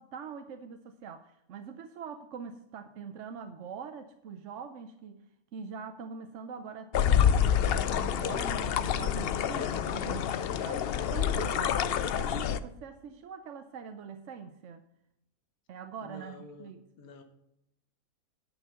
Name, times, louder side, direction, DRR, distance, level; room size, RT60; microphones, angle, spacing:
voice 1, 0.0-14.8 15.7-16.8, right 6 dB, 60° right, 8 dB, 0.9 m, -43 dB
sound 1, 6.9-12.6, left 8 dB, 85° left, 0.5 m, -27 dB
voice 2, 16.0-17.2, left 2 dB, 70° left, 6 dB, 1.6 m, -49 dB
10.5 x 6.2 x 6.4 m, 0.82 s
omnidirectional pair, 1.6 m